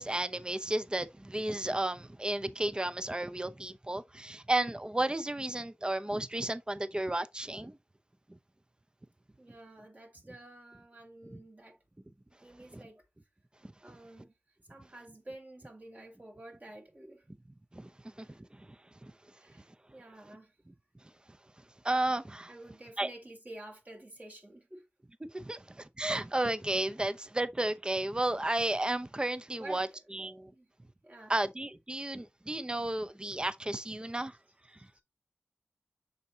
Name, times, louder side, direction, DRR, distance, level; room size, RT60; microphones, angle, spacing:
voice 1, 0.0-7.8 11.3-11.4 12.7-12.8 13.6-13.7 17.7-17.9 18.2-18.3 18.5-18.7 19.0-19.1 21.8-22.5 23.0-23.1 25.2-30.5 31.3-34.4, right 1 dB, 20° right, 0.7 m, -33 dB
voice 2, 9.4-11.8 12.4-13.0 13.8-14.3 14.7-17.3 18.1-18.4 19.3-20.5 22.5-24.9 27.0-27.1 29.5-29.8 30.5-30.7 31.0-31.4 34.7-35.0, right 1 dB, 35° right, 2.6 m, -50 dB
6.6 x 5.5 x 2.8 m
wide cardioid pair, 60°, 4 cm